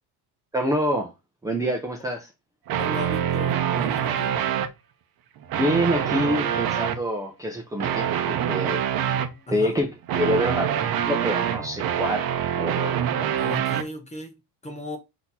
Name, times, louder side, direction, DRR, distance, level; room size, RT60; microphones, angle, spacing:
voice 1, 0.5-1.1 1.4-2.3 5.5-8.8 9.5-12.3 12.5-13.0, equal, 5° right, 0.5 m, -26 dB
sound 1, 2.7-4.7 5.4-7.0 7.8-9.3 10.1-13.8, right 9 dB, 50° right, 0.7 m, -25 dB
voice 2, 2.8-4.4 9.5-9.8 13.4-15.0, left 1 dB, 15° left, 0.9 m, -36 dB
4.1 x 2.9 x 4.0 m
cardioid pair, 140°, 46 cm